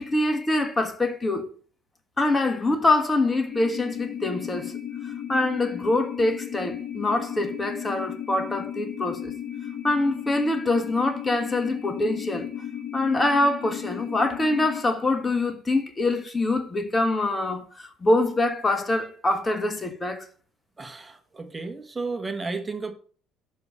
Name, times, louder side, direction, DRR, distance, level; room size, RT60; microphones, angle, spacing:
voice 1, 0.0-1.5 2.2-4.7 5.0-9.3 9.8-12.5 12.9-20.3, left 2 dB, 20° left, 1.5 m, -24 dB
sound 1, 3.5-14.8, left 9 dB, 55° left, 1.2 m, -35 dB
voice 2, 20.8-22.9, right 3 dB, 20° right, 1.4 m, -33 dB
6.7 x 5.6 x 5.6 m
supercardioid pair, 75°, 0 cm